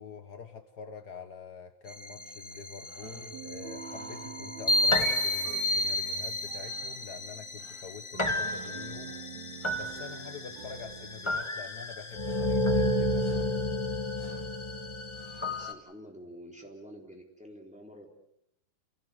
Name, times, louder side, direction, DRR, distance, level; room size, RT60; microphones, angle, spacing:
voice 1, 0.0-9.2 9.8-13.6, left 6 dB, 90° left, 7 dB, 0.8 m, -46 dB
sound 1, 1.9-15.7, left 1 dB, 35° left, 0.4 m, -31 dB
sound 2, 2.1-11.5, right 8 dB, 65° right, 2.3 m, -48 dB
voice 2, 15.4-18.1, equal, ahead, -1 dB, 3.6 m, -48 dB
29.5 x 17.0 x 8.0 m, 0.79 s
omnidirectional pair, 3.7 m